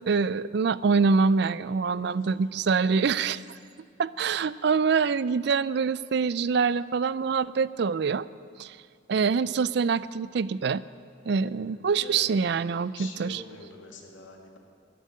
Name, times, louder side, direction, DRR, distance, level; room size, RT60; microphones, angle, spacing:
voice 1, 0.1-3.4 4.0-8.3 8.6-8.8 9.1-10.8 11.3-13.4, right 5 dB, 60° right, 18 dB, 0.4 m, -25 dB
voice 2, 11.4-12.2 12.9-14.6, left 3 dB, 90° left, 2 dB, 2.2 m, -45 dB
14.0 x 10.5 x 9.6 m, 2.3 s
head